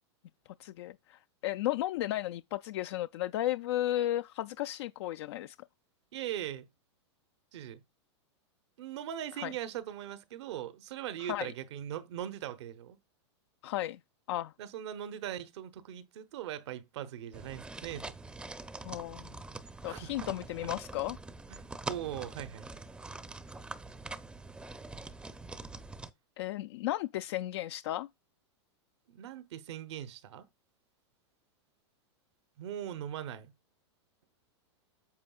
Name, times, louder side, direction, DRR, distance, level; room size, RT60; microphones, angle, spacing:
voice 1, 0.6-5.6 9.4-9.5 11.2-11.5 13.6-14.0 14.3-14.5 18.8-19.4 19.8-21.2 26.4-28.1, left 14 dB, 65° left, 0.4 m, -34 dB
voice 2, 6.1-6.7 7.5-7.8 8.8-13.0 14.6-18.1 19.8-20.3 21.5-22.7 29.1-30.5 32.6-33.5, right 11 dB, 70° right, 1.0 m, -40 dB
sound 1, 17.3-26.1, right 2 dB, 5° right, 0.6 m, -44 dB
8.6 x 7.0 x 2.4 m
hypercardioid pair, 130°, 15 cm